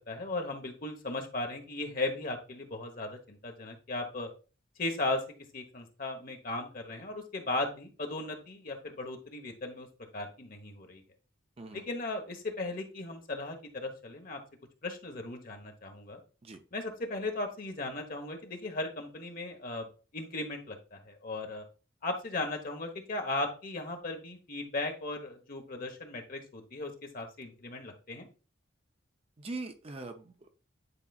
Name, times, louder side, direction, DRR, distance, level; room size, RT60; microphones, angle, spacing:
voice 1, 0.1-4.3 4.8-5.2 5.5-9.9 10.1-11.0 11.7-14.4 14.8-16.2 16.7-19.9 20.1-21.6 22.0-28.3, left 2 dB, 45° left, 4 dB, 1.1 m, -37 dB
voice 2, 29.4-30.5, right 3 dB, 30° right, 6 dB, 0.5 m, -41 dB
9.8 x 4.0 x 2.4 m, 0.35 s
head